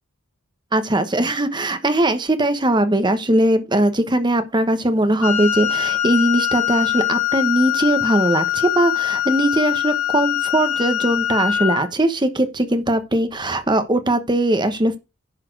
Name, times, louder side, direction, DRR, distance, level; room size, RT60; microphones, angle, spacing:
voice 1, 0.7-15.0, right 1 dB, 20° right, 1.0 m, -20 dB
Wind instrument woodwind instrument, 5.2-11.9, left 11 dB, 65° left, 1.8 m, -22 dB
10.5 x 4.2 x 6.4 m
head